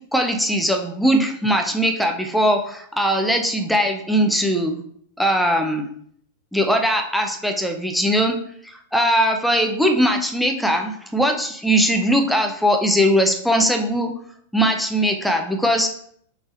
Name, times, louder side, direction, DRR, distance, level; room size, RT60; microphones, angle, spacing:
voice 1, 0.1-4.8 5.2-5.9 6.5-8.4 8.6-14.1 14.5-15.9, equal, ahead, 4 dB, 0.6 m, -20 dB
6.0 x 3.3 x 2.6 m, 0.64 s
figure-of-eight pair, 95°, 0 cm